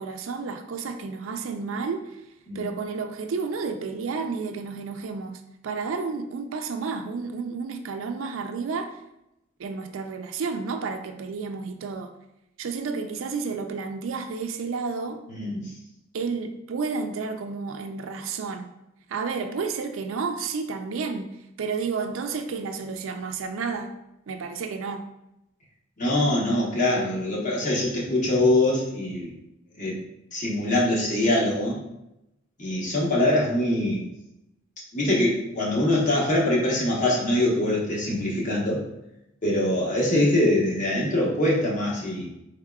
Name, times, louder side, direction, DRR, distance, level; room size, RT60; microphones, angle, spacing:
voice 1, 0.0-2.2 2.5-9.0 9.6-12.1 12.6-15.2 16.1-18.7 19.1-21.3 21.6-23.9 24.3-25.1, right 4 dB, 75° right, 6 dB, 0.4 m, -31 dB
voice 2, 15.3-15.7 26.0-29.3 29.7-30.0 30.3-31.8 32.6-34.1 34.9-38.8 39.4-42.3, left 1 dB, 40° left, -4 dB, 1.0 m, -23 dB
4.6 x 3.6 x 2.3 m, 0.87 s
head